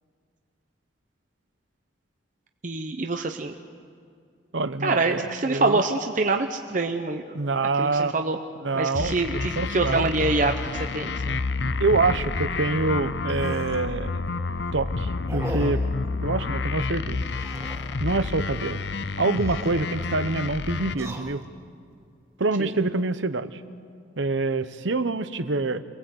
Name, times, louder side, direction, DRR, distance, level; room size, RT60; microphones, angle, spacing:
voice 1, 2.6-3.6 4.8-7.3 7.8-8.4 8.7-11.4 22.6-22.7, right 3 dB, 45° right, 5 dB, 0.9 m, -25 dB
voice 2, 4.5-5.8 7.3-8.1 8.6-10.1 11.6-14.3 14.7-15.8 16.2-17.2 18.0-18.8 19.2-21.4 22.4-23.6 24.2-25.8, right 3 dB, 80° right, 12 dB, 1.0 m, -26 dB
sound 1, 8.9-20.9, left 3 dB, 65° left, 0.7 m, -29 dB
sound 2, 11.6-11.7 12.2-12.3 12.5-12.6 13.2-13.9 14.4-14.7 15.3-15.9 17.3-18.0 19.2-19.8 20.8-21.7 22.3-22.8, right 1 dB, 15° right, 1.9 m, -39 dB
27.5 x 20.0 x 8.0 m, 2.2 s
head